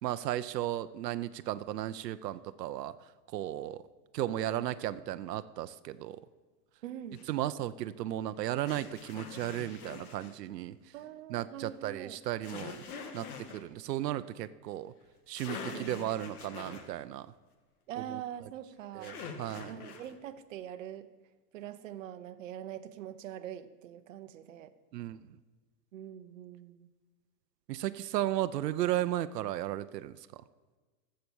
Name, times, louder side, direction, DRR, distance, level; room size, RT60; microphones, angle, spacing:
voice 1, 0.0-2.9 3.3-3.8 4.1-6.2 7.3-10.8 11.3-12.8 13.1-13.3 13.5-14.9 15.3-17.3 18.1-18.2 18.9-19.7 24.9-25.2 27.7-30.4, right 13 dB, 90° right, 13 dB, 0.7 m, -35 dB
voice 2, 6.8-7.2 10.9-12.2 15.7-15.9 17.9-19.2 19.7-21.1 21.5-24.7 25.9-26.9, right 10 dB, 55° right, 10 dB, 0.8 m, -43 dB
sound 1, 7.1-7.3 8.7-10.4 12.4-13.6 15.1-15.2 15.4-16.9 19.0-20.1, left 5 dB, 65° left, 1.7 m, -44 dB
12.5 x 7.7 x 7.0 m, 1.4 s
supercardioid pair, 180°, 47 cm